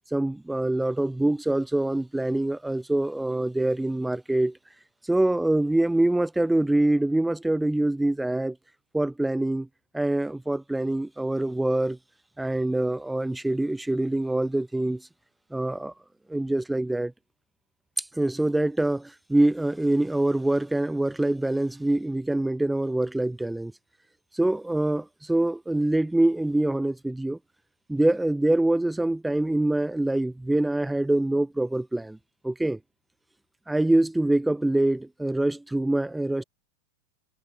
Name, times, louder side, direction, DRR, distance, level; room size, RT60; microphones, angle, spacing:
voice 1, 0.1-4.6 5.1-8.6 8.9-9.7 9.9-12.0 12.4-15.0 15.5-15.9 16.3-17.1 18.0-23.7 24.3-27.4 27.9-32.2 32.4-32.8 33.7-36.4, right 1 dB, 5° right, 1.8 m, -25 dB
figure-of-eight pair, 90°, 0 cm